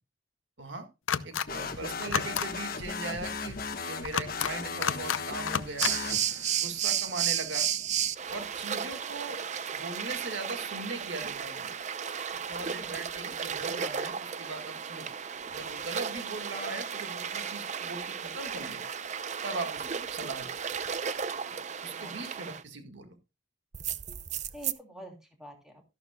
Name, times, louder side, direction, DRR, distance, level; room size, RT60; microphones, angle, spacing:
sound 1, 1.1-1.5 2.0-2.5 4.0-4.5 4.8-5.2 5.5-5.9, left 8 dB, 90° left, 0.7 m, -30 dB
voice 1, 1.2-3.6 3.8-5.9 6.6-7.7 8.3-9.4 9.7-11.7 12.5-15.1 15.5-18.8 19.4-20.5 21.8-23.2, right 3 dB, 70° right, 6 dB, 1.8 m, -39 dB
sound 2, 1.5-6.7, left 4 dB, 50° left, 1.3 m, -37 dB
sound 3, 5.8-22.6 23.7-24.7, right 8 dB, 35° right, 0.5 m, -34 dB
voice 2, 12.6-13.4 19.8-20.1 21.9-22.5 24.5-25.7, equal, 5° right, 1 dB, 2.9 m, -49 dB
13.5 x 11.5 x 2.3 m, 0.26 s
head